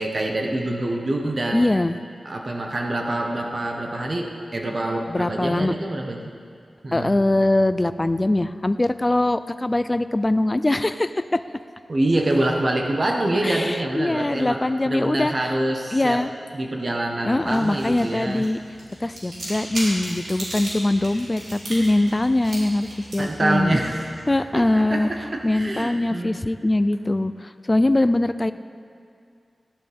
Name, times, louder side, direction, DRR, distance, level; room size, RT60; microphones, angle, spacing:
voice 1, 0.0-1.6 2.2-6.2 6.8-7.2 11.9-16.2 16.5-18.5 23.2-24.2 24.5-26.4, right 1 dB, 45° right, 1 dB, 1.3 m, -25 dB
voice 2, 1.5-1.9 5.1-5.7 6.9-11.2 13.4-15.6 15.9-16.3 17.2-18.6 19.0-23.8 24.3-25.1 25.4-28.5, left 1 dB, 25° left, 12 dB, 0.4 m, -22 dB
sound 1, 17.2-25.7, right 1 dB, 90° right, 3.7 m, -37 dB
17.5 x 12.0 x 3.6 m, 2.3 s
wide cardioid pair, 75°, 0 cm